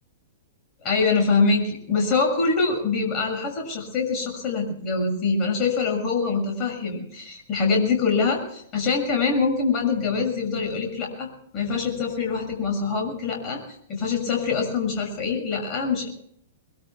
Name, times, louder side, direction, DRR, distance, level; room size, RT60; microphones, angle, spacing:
voice 1, 0.8-13.6 13.9-16.1, left 4 dB, 30° left, 1 dB, 6.6 m, -24 dB
23.0 x 23.0 x 2.3 m, 0.66 s
figure-of-eight pair, 105°, 0 cm